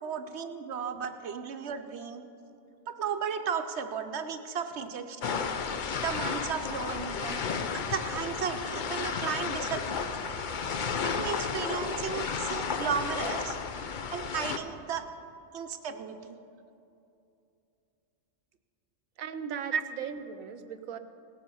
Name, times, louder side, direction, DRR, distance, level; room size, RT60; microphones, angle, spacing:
voice 1, 0.0-2.2 2.9-5.5 6.0-10.0 11.0-13.6 14.1-15.0 15.5-16.4 19.7-19.8, right 7 dB, 65° right, 8 dB, 0.9 m, -34 dB
sound 1, 5.2-14.6, left 5 dB, 50° left, 0.6 m, -33 dB
voice 2, 19.2-21.0, right 7 dB, 90° right, 10 dB, 1.1 m, -39 dB
18.0 x 7.7 x 5.5 m, 2.7 s
omnidirectional pair, 1.4 m